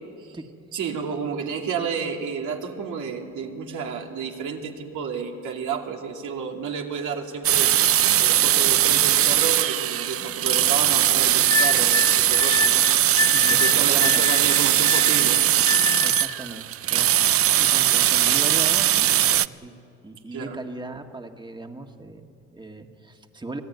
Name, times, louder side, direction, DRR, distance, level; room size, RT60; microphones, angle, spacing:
voice 1, 0.7-12.9 13.5-15.4 20.3-20.6, right 6 dB, 75° right, 1 dB, 2.6 m, -31 dB
sound 1, 7.4-19.5, right 11 dB, 50° right, 0.5 m, -20 dB
sound 2, 11.5-16.4, left 4 dB, 15° left, 1.7 m, -27 dB
voice 2, 13.3-13.6 13.8-14.2 16.0-17.3 17.6-19.7 20.0-23.6, right 2 dB, 15° right, 4 dB, 1.8 m, -38 dB
26.0 x 16.5 x 9.4 m, 2.5 s
cardioid pair, 90°, 30 cm